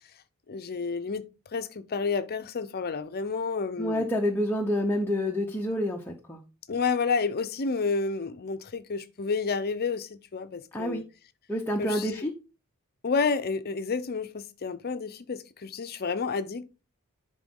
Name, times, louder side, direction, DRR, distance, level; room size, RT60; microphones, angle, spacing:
voice 1, 0.5-1.2 1.5-4.1 6.7-11.0 11.8-12.3 13.0-16.6, left 4 dB, 45° left, 0.6 m, -30 dB
voice 2, 3.8-6.4 10.7-11.0 11.5-12.3, equal, 10° left, 0.7 m, -28 dB
10.0 x 3.8 x 3.6 m
head